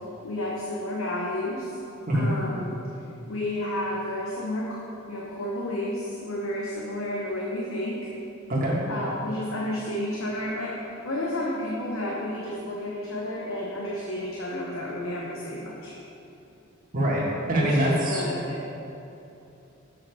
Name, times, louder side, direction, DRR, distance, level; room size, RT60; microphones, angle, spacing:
voice 1, 0.2-1.8 2.1-2.7 3.3-8.1 8.9-10.7 11.0-15.9 17.5-18.6, left 1 dB, 75° left, -4 dB, 1.0 m, -31 dB
voice 2, 16.9-18.2, right 1 dB, 45° right, -5 dB, 1.9 m, -24 dB
7.4 x 6.2 x 4.9 m, 2.8 s
head